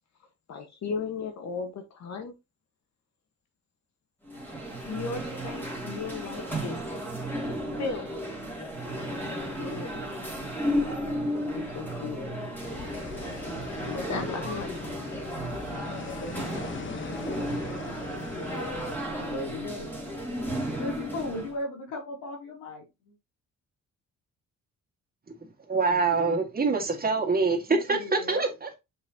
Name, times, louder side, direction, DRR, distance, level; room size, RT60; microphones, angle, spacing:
voice 1, 0.5-2.3 4.8-6.8 7.8-8.1 8.5-10.1 11.3-12.4 13.8-14.7, left 5 dB, 60° left, 1.5 m, -36 dB
sound 1, 4.2-21.6, equal, 5° left, 3.0 m, -34 dB
sound 2, 12.6-19.0, left 5 dB, 40° left, 1.2 m, -40 dB
voice 2, 19.2-20.1 20.7-23.1 27.7-28.5, left 2 dB, 80° left, 3.2 m, -37 dB
voice 3, 25.7-28.8, right 4 dB, 30° right, 2.1 m, -25 dB
6.8 x 5.7 x 2.9 m
cardioid pair, 90°, 30 cm